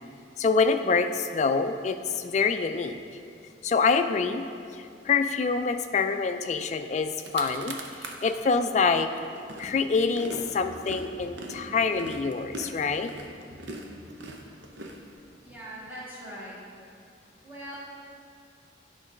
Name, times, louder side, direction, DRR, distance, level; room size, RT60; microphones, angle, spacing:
voice 1, 0.4-3.0 3.6-4.5 5.1-7.8 8.2-9.1 9.6-13.1, left 4 dB, 40° left, 8 dB, 0.3 m, -25 dB
sound 1, 7.1-8.3 8.8-15.5, right 2 dB, 80° right, 0.7 m, -41 dB
voice 2, 15.4-16.6 17.4-17.8, equal, 10° right, -8 dB, 1.7 m, -41 dB
8.7 x 3.9 x 5.1 m, 2.3 s
head